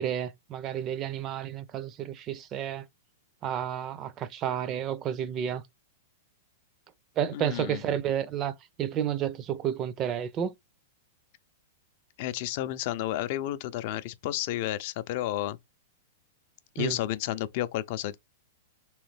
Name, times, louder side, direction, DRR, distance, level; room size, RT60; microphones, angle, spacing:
voice 1, 0.0-2.9 3.4-5.6 7.2-8.5 8.8-10.5 16.8-17.0, right 9 dB, 35° right, 0.5 m, -31 dB
voice 2, 7.3-7.8 12.2-15.6 16.8-18.2, left 14 dB, 55° left, 0.5 m, -31 dB
3.4 x 3.0 x 3.3 m
hypercardioid pair, 125°, 0 cm